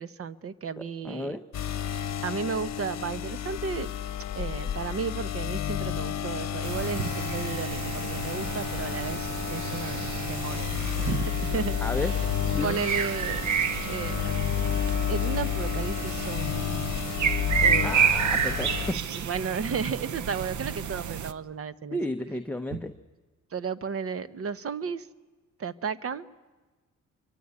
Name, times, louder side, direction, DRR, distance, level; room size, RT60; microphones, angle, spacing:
voice 1, 0.0-1.4 1.9-3.9 4.4-12.3 12.6-13.5 13.9-14.5 15.1-16.8 17.6-18.1 19.1-22.0 22.7-22.8 23.5-25.1 25.6-26.3, right 6 dB, 45° right, 15 dB, 1.0 m, -34 dB
voice 2, 0.8-1.4 11.8-12.1 12.5-12.8 17.8-19.0 21.9-22.9, left 1 dB, 5° left, 6 dB, 0.8 m, -32 dB
sound 1, 1.5-18.9, left 10 dB, 55° left, 1.1 m, -31 dB
sound 2, 6.6-21.3, right 7 dB, 65° right, 1.0 m, -30 dB
23.5 x 23.5 x 9.6 m, 1.2 s
cardioid pair, 115°, 32 cm